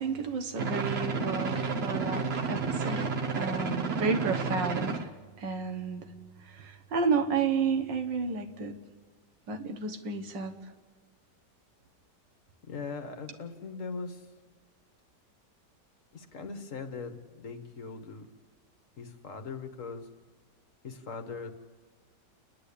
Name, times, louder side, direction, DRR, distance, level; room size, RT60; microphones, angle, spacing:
voice 1, 0.0-5.1 5.4-6.1 6.4-8.8 9.5-10.5, right 5 dB, 85° right, 6 dB, 2.0 m, -31 dB
sound 1, 0.6-5.1, right 4 dB, 45° right, 1.1 m, -31 dB
voice 2, 12.7-14.2 16.1-18.3 19.0-20.1 20.8-21.5, left 4 dB, 50° left, 7 dB, 1.5 m, -40 dB
29.0 x 10.5 x 8.5 m, 1.4 s
omnidirectional pair, 1.9 m